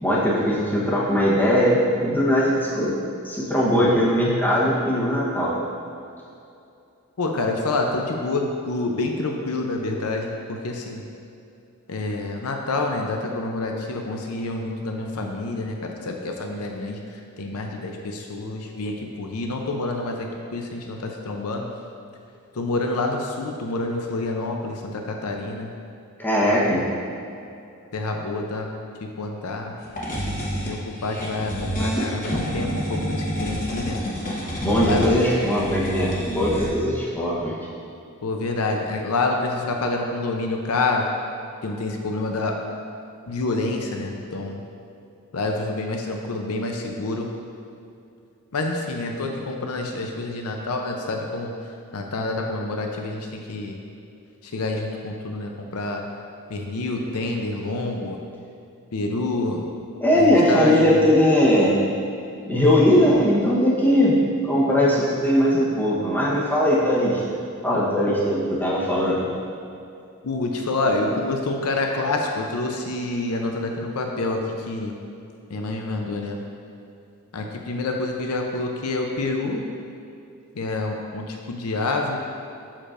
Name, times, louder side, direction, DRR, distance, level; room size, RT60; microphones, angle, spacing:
voice 1, 0.0-2.9 3.2-5.5 26.2-26.8 34.6-37.6 60.0-61.8 62.4-64.1 64.4-67.4 67.6-69.2, equal, 10° left, -6 dB, 1.0 m, -20 dB
voice 2, 7.2-11.0 11.9-17.0 17.4-21.8 22.5-25.7 27.9-28.7 29.0-29.8 30.6-34.0 34.8-35.2 38.2-41.1 41.6-42.6 43.3-44.6 45.3-47.3 48.5-51.5 51.9-53.8 54.4-56.0 56.5-58.2 58.9-59.6 60.1-61.0 70.2-74.4 74.7-75.0 75.5-76.4 77.3-79.6 80.6-82.2, left 2 dB, 75° left, 2 dB, 0.6 m, -27 dB
sound 1, 29.8-36.7, equal, 35° left, 1.2 m, -28 dB
7.4 x 6.5 x 2.5 m, 2.6 s
head